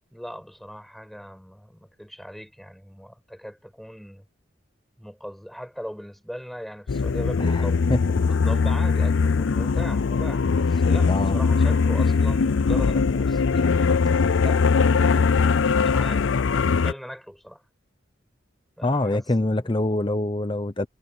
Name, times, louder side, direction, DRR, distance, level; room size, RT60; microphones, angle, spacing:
voice 1, 0.1-4.2 5.0-7.8 8.3-13.9 14.4-17.6 18.8-19.7, equal, ahead, 6.4 m, -39 dB
sound 1, 6.9-16.9, left 5 dB, 80° left, 0.5 m, -21 dB
voice 2, 7.4-8.0 11.1-11.4 18.8-20.9, left 2 dB, 25° left, 0.7 m, -25 dB
head